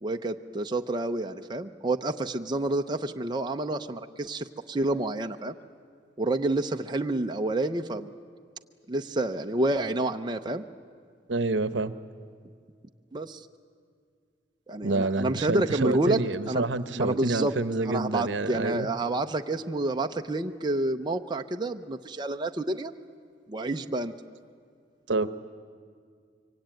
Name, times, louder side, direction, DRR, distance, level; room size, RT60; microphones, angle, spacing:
voice 1, 0.0-5.5 6.2-8.1 8.9-10.6 13.1-13.5 14.7-16.2 16.5-16.7 16.9-17.5 17.8-22.9 23.5-24.1, right 2 dB, 25° right, 5 dB, 0.6 m, -29 dB
voice 2, 11.3-11.9 14.8-18.9 25.1-25.3, right 2 dB, 75° right, 13 dB, 0.9 m, -28 dB
25.0 x 24.0 x 9.2 m, 2.1 s
head